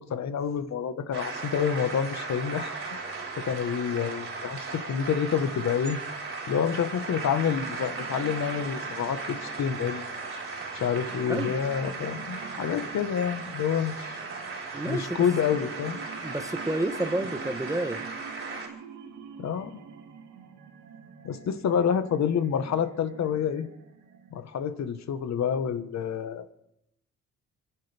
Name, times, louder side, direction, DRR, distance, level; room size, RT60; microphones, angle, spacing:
voice 1, 0.0-3.0 3.4-6.0 6.5-10.0 10.7-14.2 14.9-16.0 19.4-19.8 21.2-23.7 24.3-26.5, left 7 dB, 60° left, 10 dB, 1.4 m, -28 dB
sound 1, 1.1-18.7, right 4 dB, 45° right, 4.5 m, -37 dB
sound 2, 6.8-24.7, right 6 dB, 80° right, 2.3 m, -48 dB
voice 2, 14.7-15.2 16.2-18.1, right 1 dB, 10° right, 9 dB, 1.2 m, -30 dB
29.5 x 10.5 x 3.5 m, 0.80 s
cardioid pair, 90°, 30 cm